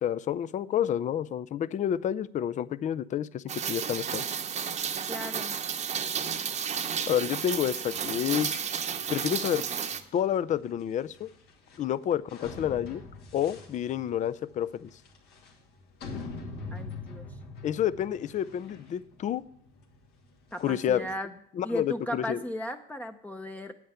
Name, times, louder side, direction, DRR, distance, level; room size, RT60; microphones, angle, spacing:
voice 1, 0.0-4.2 7.1-8.6 9.1-9.6 10.1-11.3 11.8-13.0 13.3-14.9 17.6-19.4 20.6-21.0 21.5-22.4, left 10 dB, 45° left, 17 dB, 0.5 m, -29 dB
Rain, 3.5-10.0, right 7 dB, 45° right, 0.9 m, -32 dB
voice 2, 5.1-5.6 16.7-17.3 20.5-21.3 21.6-23.7, left 1 dB, 10° left, 6 dB, 0.7 m, -36 dB
sound 1, 7.9-21.1, left 3 dB, 75° left, 2.5 m, -45 dB
9.3 x 8.7 x 6.8 m, 0.66 s
cardioid pair, 110°, 17 cm